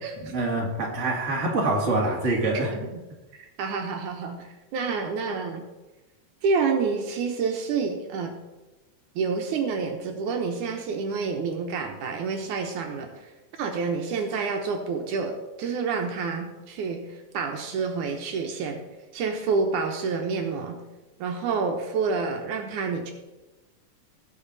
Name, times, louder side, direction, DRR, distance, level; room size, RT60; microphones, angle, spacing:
voice 1, 0.2-2.8, right 2 dB, 25° right, -2 dB, 2.1 m, -25 dB
voice 2, 2.7-3.0 3.4-5.6 6.4-8.3 9.2-13.1 13.6-17.0 17.3-18.8 19.1-20.8 21.2-23.1, right 5 dB, 75° right, 3 dB, 2.5 m, -28 dB
19.0 x 6.5 x 4.1 m, 1.1 s
omnidirectional pair, 3.6 m